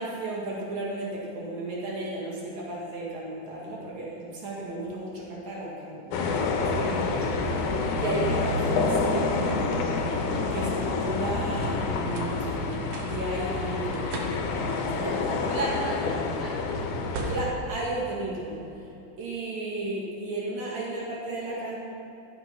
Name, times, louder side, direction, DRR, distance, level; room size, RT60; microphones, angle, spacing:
voice 1, 0.0-9.8 10.5-14.1 14.9-15.7 17.3-18.6 19.2-21.8, right 2 dB, 60° right, -4 dB, 3.0 m, -34 dB
sound 1, 6.1-17.4, left 3 dB, 80° left, 2.6 m, -28 dB
sound 2, 6.4-18.8, right 2 dB, 80° right, 2.8 m, -42 dB
voice 2, 15.1-17.2, equal, 25° left, -7 dB, 3.1 m, -43 dB
13.0 x 8.2 x 5.7 m, 3.0 s
omnidirectional pair, 3.7 m